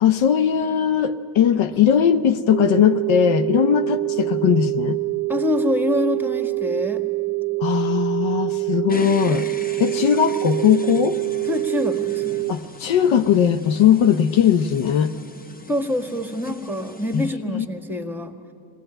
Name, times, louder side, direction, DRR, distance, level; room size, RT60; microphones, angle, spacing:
voice 1, 0.0-5.0 7.6-9.5 9.8-11.2 12.5-15.1 17.1-17.2 17.5-17.7, left 8 dB, 70° left, 10 dB, 0.8 m, -19 dB
sound 1, 2.5-12.5, right 24 dB, 25° right, 0.8 m, -25 dB
voice 2, 5.3-7.0 11.5-12.4 15.7-18.3, left 1 dB, 5° right, 5 dB, 1.8 m, -26 dB
sound 2, 8.9-17.3, left 3 dB, 20° left, 0.9 m, -40 dB
21.0 x 17.5 x 8.9 m, 2.7 s
supercardioid pair, 65°, 49 cm